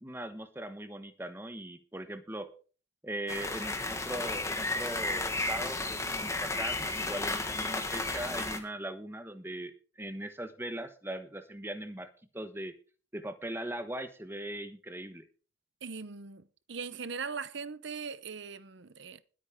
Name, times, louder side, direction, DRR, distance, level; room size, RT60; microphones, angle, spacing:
voice 1, 0.0-2.5 3.0-12.1 12.3-12.7 13.1-15.2, right 1 dB, 10° right, 1.1 m, -40 dB
sound 1, 3.3-8.6, left 2 dB, 15° left, 1.5 m, -33 dB
voice 2, 15.8-19.2, right 5 dB, 65° right, 0.8 m, -40 dB
20.5 x 8.6 x 3.6 m
head